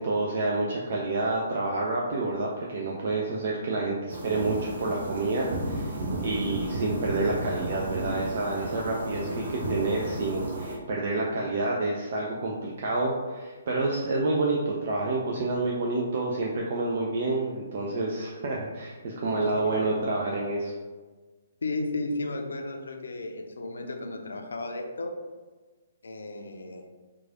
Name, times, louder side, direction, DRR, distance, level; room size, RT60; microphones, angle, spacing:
voice 1, 0.0-20.7, right 2 dB, 50° right, -2 dB, 0.4 m, -28 dB
sound 1, 4.1-10.8, right 1 dB, 65° right, 0.8 m, -33 dB
voice 2, 19.4-19.8 21.6-25.1 26.0-26.8, left 2 dB, 65° left, 3 dB, 0.5 m, -34 dB
3.1 x 2.4 x 3.6 m, 1.3 s
figure-of-eight pair, 130°, 0 cm